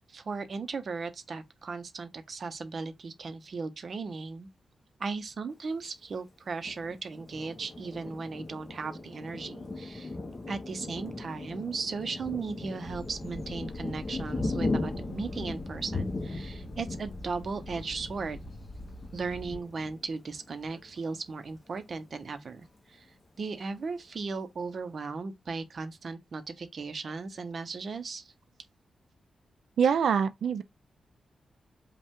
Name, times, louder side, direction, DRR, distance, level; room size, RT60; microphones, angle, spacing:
voice 1, 0.0-4.5 5.0-10.1 10.5-18.4 19.1-23.1 23.4-28.3, right 4 dB, 45° right, 0.7 m, -37 dB
Thunder, 6.6-21.0 21.4-21.6 21.9-22.5, left 2 dB, 25° left, 1.0 m, -38 dB
sound 1, 12.8-19.6, left 1 dB, 50° left, 2.1 m, -45 dB
voice 2, 29.8-30.6, right 7 dB, 75° right, 0.4 m, -24 dB
5.2 x 2.3 x 3.6 m
wide cardioid pair, 150°, 0 cm